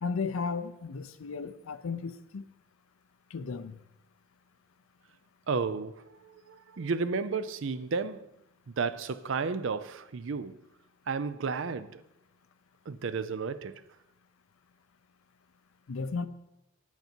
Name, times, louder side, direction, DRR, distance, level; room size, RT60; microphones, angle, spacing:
voice 1, 0.0-2.4 3.3-3.8 15.9-16.3, left 4 dB, 80° left, 0.5 m, -34 dB
voice 2, 5.5-8.3 8.7-10.6 11.1-12.0 12.9-13.8, right 4 dB, 65° right, 0.5 m, -33 dB
9.4 x 8.2 x 4.4 m
head